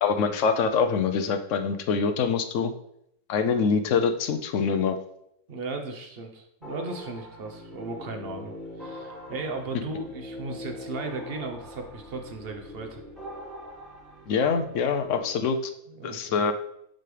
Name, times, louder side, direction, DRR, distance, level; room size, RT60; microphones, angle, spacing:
voice 1, 0.0-2.7 3.3-5.0 14.3-15.6 16.0-16.5, left 5 dB, 65° left, 7 dB, 0.8 m, -24 dB
voice 2, 5.5-13.0 15.9-16.4, right 3 dB, 45° right, 4 dB, 1.0 m, -36 dB
sound 1, 6.6-15.3, left 1 dB, ahead, 1.4 m, -42 dB
7.6 x 5.2 x 3.3 m, 0.76 s
omnidirectional pair, 1.6 m